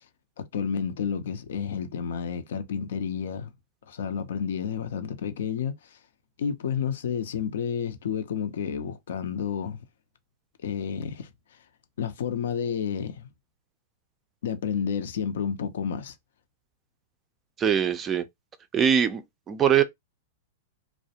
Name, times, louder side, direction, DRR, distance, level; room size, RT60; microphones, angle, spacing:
voice 1, 0.4-3.5 3.9-6.0 6.4-9.8 10.6-11.3 12.0-13.3 14.4-16.1, left 7 dB, 75° left, 0.5 m, -30 dB
voice 2, 17.6-18.2 18.7-19.2 19.5-19.8, right 8 dB, 20° right, 0.3 m, -22 dB
2.3 x 2.1 x 2.7 m
hypercardioid pair, 135°, 0 cm